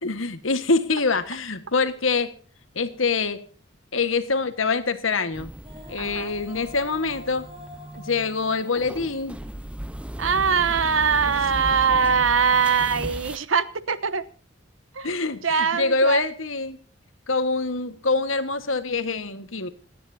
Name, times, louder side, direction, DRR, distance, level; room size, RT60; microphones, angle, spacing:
voice 1, 0.0-2.3 2.7-3.4 3.9-5.5 5.9-7.5 7.9-9.4 15.0-16.8 17.3-19.7, left 3 dB, 90° left, 10 dB, 1.6 m, -25 dB
sound 1, 5.3-13.4, right 1 dB, 5° right, 0.5 m, -37 dB
Female singing, 5.5-10.7, left 3 dB, 30° right, 3.0 m, -46 dB
voice 2, 6.0-6.3 10.2-14.3 14.9-15.2 15.4-16.2, right 6 dB, 85° right, 15 dB, 1.0 m, -22 dB
27.5 x 10.0 x 2.8 m, 0.41 s
head